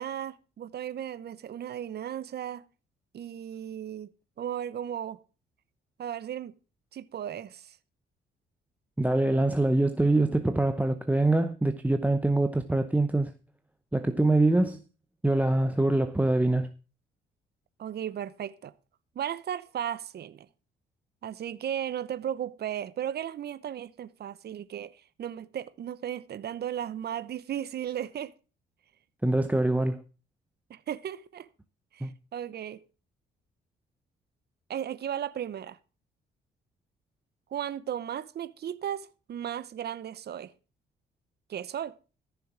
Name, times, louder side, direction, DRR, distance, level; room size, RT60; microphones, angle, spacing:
voice 1, 0.0-2.6 3.1-4.1 4.4-5.2 6.0-6.5 6.9-7.8 17.8-18.7 19.2-20.5 21.2-28.3 30.7-31.5 31.9-32.8 34.7-35.8 37.5-40.5 41.5-41.9, right 10 dB, 55° right, 0.9 m, -35 dB
voice 2, 9.0-13.3 13.9-14.8 15.2-16.7 29.2-30.0 32.0-32.1, right 2 dB, 5° right, 0.8 m, -24 dB
14.0 x 7.0 x 6.1 m
cardioid pair, 90°, 20 cm